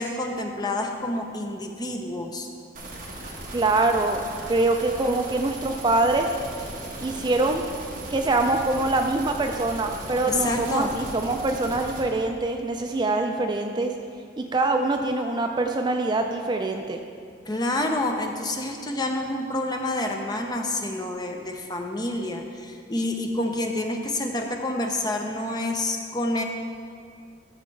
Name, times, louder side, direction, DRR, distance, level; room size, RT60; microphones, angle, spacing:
voice 1, 0.0-2.5 10.3-10.9 17.5-26.4, left 1 dB, 20° left, 3 dB, 0.6 m, -28 dB
sound 1, 2.7-12.0, right 1 dB, 45° right, 1.5 m, -37 dB
voice 2, 3.5-4.2 4.5-6.3 7.0-7.6 8.1-13.9 14.4-17.0, right 2 dB, 25° right, 4 dB, 0.3 m, -24 dB
13.5 x 6.5 x 3.2 m, 2.3 s
head